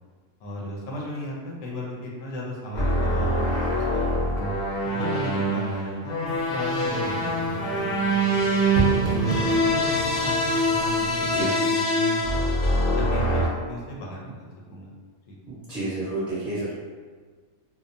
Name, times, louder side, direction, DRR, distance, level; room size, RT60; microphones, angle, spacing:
voice 1, 0.4-4.3 4.8-8.2 9.0-10.3 10.7-12.4 12.9-14.9 15.3-15.4, right 1 dB, 85° left, -3 dB, 1.0 m, -35 dB
sound 1, 2.7-13.5, equal, 55° left, 0.7 m, -24 dB
sound 2, 6.3-11.4, right 1 dB, 80° right, 1.0 m, -32 dB
sound 3, 6.8-12.3, right 3 dB, 40° right, 0.7 m, -39 dB
voice 2, 15.5-16.7, right 2 dB, ahead, -13 dB, 0.7 m, -30 dB
2.8 x 2.1 x 2.5 m, 1.5 s
omnidirectional pair, 1.3 m